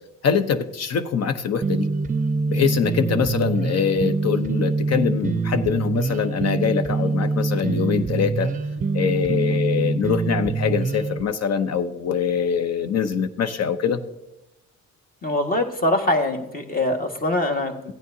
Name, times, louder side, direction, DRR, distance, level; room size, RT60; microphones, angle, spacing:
voice 1, 0.2-1.9 2.5-8.5 8.9-14.0, left 7 dB, 55° left, 9 dB, 0.9 m, -23 dB
sound 1, 1.6-11.2, right 4 dB, 25° right, 0.5 m, -24 dB
voice 2, 15.2-17.9, left 1 dB, 30° left, 3 dB, 1.7 m, -23 dB
16.0 x 9.3 x 2.8 m, 0.91 s
cardioid pair, 90°, 30 cm